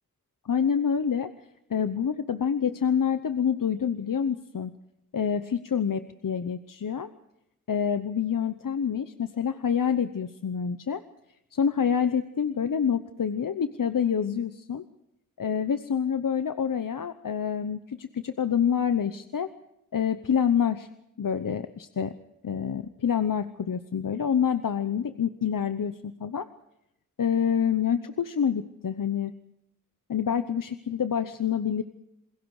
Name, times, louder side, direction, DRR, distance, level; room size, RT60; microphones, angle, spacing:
voice 1, 0.4-1.3 1.7-4.7 5.1-7.1 7.7-11.0 11.5-14.8 15.4-19.5 19.9-20.9 21.2-22.1 22.4-26.5 27.2-29.3 30.1-31.8, left 7 dB, 75° left, 10 dB, 0.9 m, -27 dB
28.0 x 21.5 x 4.9 m, 0.82 s
cardioid pair, 50°, 33 cm